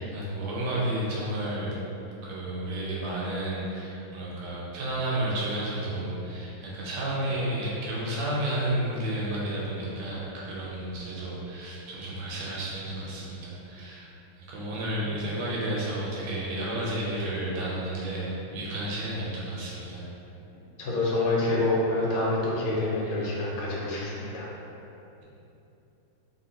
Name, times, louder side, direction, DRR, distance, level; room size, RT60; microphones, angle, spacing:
voice 1, 0.0-1.7 2.2-20.0, right 1 dB, 80° right, -6 dB, 1.6 m, -32 dB
voice 2, 20.8-24.5, left 2 dB, 85° left, -5 dB, 1.6 m, -27 dB
3.2 x 3.0 x 2.8 m, 2.9 s
omnidirectional pair, 2.3 m